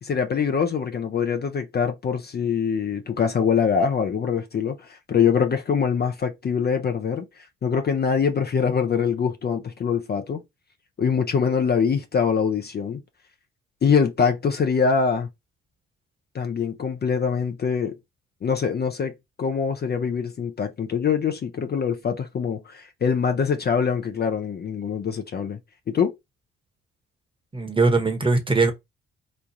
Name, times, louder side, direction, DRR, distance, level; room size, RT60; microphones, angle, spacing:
voice 1, 0.0-10.4 11.0-13.0 13.8-15.3 16.3-18.0 18.4-25.6 25.9-26.1, left 6 dB, 35° left, 0.6 m, -24 dB
voice 2, 27.5-28.7, right 3 dB, 15° right, 1.1 m, -20 dB
3.2 x 2.3 x 3.9 m
hypercardioid pair, 45°, 30 cm